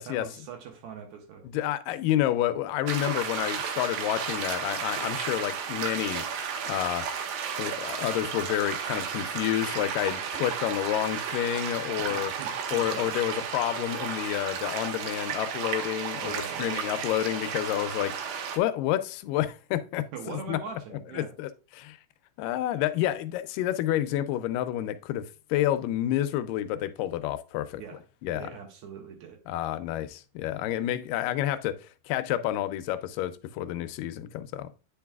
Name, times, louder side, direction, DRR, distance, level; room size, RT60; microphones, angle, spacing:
voice 1, 0.1-1.5 12.1-13.1 16.2-16.9 20.1-21.3 27.8-28.0 28.3-29.4, right 6 dB, 70° right, 2.1 m, -42 dB
voice 2, 1.5-6.3 6.6-7.1 7.6-12.3 12.7-20.6 21.1-22.0 22.4-27.8 28.2-28.5 29.5-34.7, left 13 dB, 85° left, 2.2 m, -29 dB
sound 1, 2.9-18.6, right 7 dB, 85° right, 2.5 m, -33 dB
9.0 x 4.7 x 2.3 m
omnidirectional pair, 3.9 m